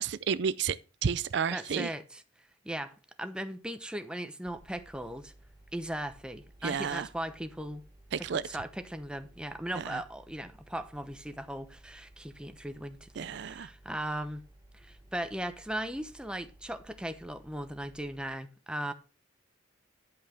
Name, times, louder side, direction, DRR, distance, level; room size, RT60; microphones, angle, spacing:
voice 1, 0.0-1.9 6.6-7.1 8.1-8.5 9.8-10.0 13.2-13.7, right 7 dB, 65° right, 0.4 m, -31 dB
voice 2, 1.5-2.0 2.6-5.3 5.7-7.8 8.5-14.4 14.7-18.9, right 1 dB, 5° right, 0.9 m, -38 dB
sound 1, 4.5-18.2, right 1 dB, 20° right, 1.2 m, -57 dB
10.5 x 5.5 x 6.3 m
head